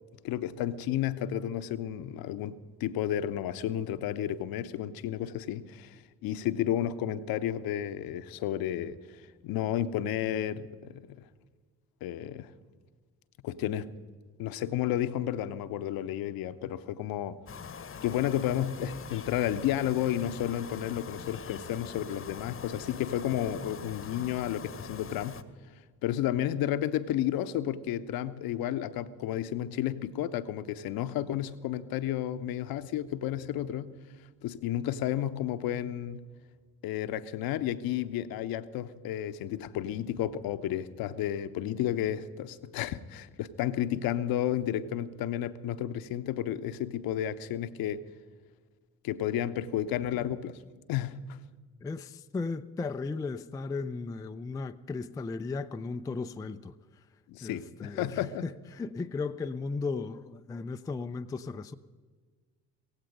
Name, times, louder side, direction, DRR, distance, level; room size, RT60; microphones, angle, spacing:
voice 1, 0.2-9.0 9.4-11.2 12.0-12.5 13.4-13.9 14.4-17.4 18.0-25.4 26.0-33.9 34.4-36.2 36.8-48.0 49.0-50.6 50.9-51.2 57.3-58.5, left 11 dB, 50° left, 0.9 m, -32 dB
sound 1, 17.5-25.4, left 6 dB, 30° left, 1.0 m, -43 dB
voice 2, 51.8-56.7 57.4-61.8, left 4 dB, 10° left, 0.4 m, -36 dB
17.5 x 15.5 x 5.2 m
figure-of-eight pair, 45°, 44 cm